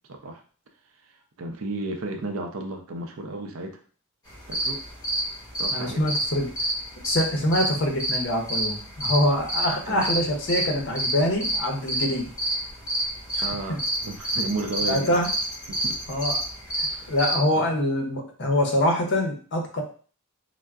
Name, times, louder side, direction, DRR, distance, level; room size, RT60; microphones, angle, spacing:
voice 1, 0.1-0.4 1.4-3.8 4.5-4.8 5.6-6.1 9.9-10.0 13.4-15.2 15.7-16.0 16.9-17.1 17.6-17.7, right 2 dB, 70° right, 4 dB, 0.5 m, -33 dB
sound 1, 4.3-17.4, right 1 dB, 20° left, 1.2 m, -28 dB
voice 2, 5.7-6.5 7.0-12.3 13.3-13.4 13.7-13.8 14.8-15.3 16.1-16.4 17.1-19.8, left 1 dB, 55° left, 2 dB, 0.6 m, -24 dB
3.5 x 2.0 x 2.3 m, 0.41 s
head